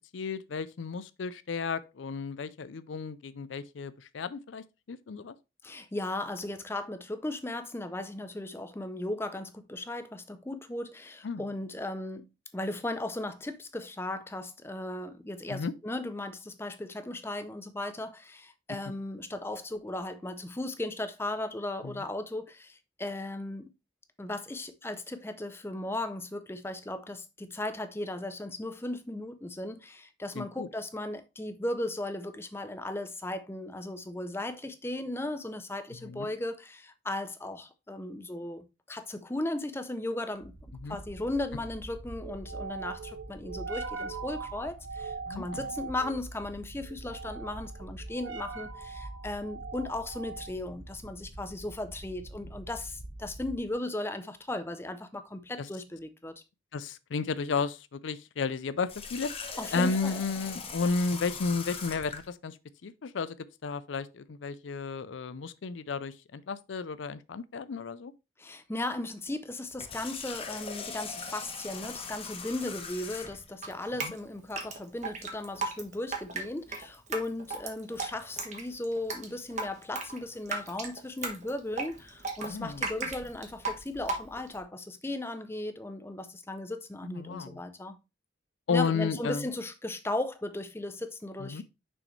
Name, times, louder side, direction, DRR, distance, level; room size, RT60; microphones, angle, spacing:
voice 1, 0.1-5.3 11.2-11.4 15.5-15.7 21.8-22.0 30.3-30.7 36.0-36.3 40.8-41.0 45.3-45.7 55.6-55.7 56.7-59.3 59.7-62.6 62.8-63.4 63.6-68.1 74.0-74.1 82.4-82.8 87.0-87.6 88.7-89.5 91.4-91.6, left 4 dB, 80° left, 0.5 m, -33 dB
voice 2, 5.6-12.3 12.5-23.7 24.2-40.6 40.9-56.4 59.6-60.2 68.4-88.0 88.7-91.6, left 1 dB, 15° left, 0.5 m, -36 dB
sound 1, 40.4-53.7, right 3 dB, 80° right, 1.0 m, -42 dB
Water tap faucet, 58.9-62.3 69.7-73.5, left 5 dB, 30° left, 1.1 m, -40 dB
Drip, 73.6-84.6, right 3 dB, 40° right, 1.4 m, -36 dB
6.3 x 6.0 x 3.2 m
head